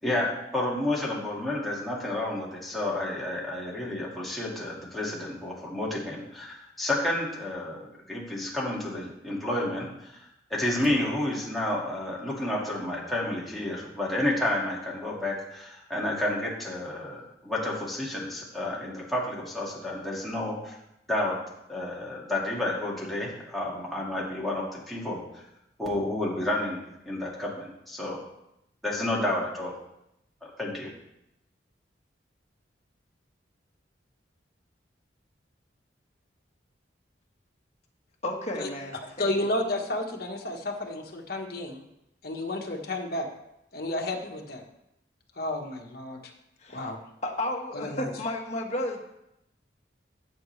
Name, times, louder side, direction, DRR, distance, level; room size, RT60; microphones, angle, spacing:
voice 1, 0.0-10.2 10.5-20.8 21.1-21.4 21.7-25.4 25.8-28.2 28.8-29.7 30.4-30.9, left 1 dB, ahead, -5 dB, 2.3 m, -30 dB
voice 2, 38.2-39.3 46.6-46.9 47.2-49.0, left 1 dB, 35° left, 0 dB, 1.5 m, -32 dB
voice 3, 39.2-41.8 42.2-43.3 43.7-44.6 45.4-46.2 46.7-47.0 47.7-48.1, left 1 dB, 55° left, 1 dB, 1.5 m, -31 dB
15.0 x 7.7 x 3.3 m, 0.84 s
head